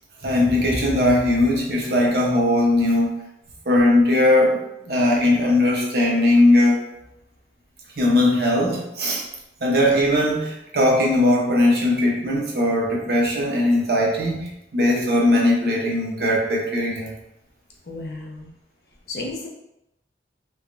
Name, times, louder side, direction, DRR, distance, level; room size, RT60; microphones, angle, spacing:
voice 1, 0.2-3.2 3.7-6.9 8.0-9.2 9.6-17.1, left 1 dB, 60° right, -2 dB, 0.7 m, -19 dB
voice 2, 17.8-18.5 19.1-19.5, left 2 dB, 60° left, -1 dB, 0.5 m, -33 dB
3.3 x 2.2 x 2.4 m, 0.86 s
head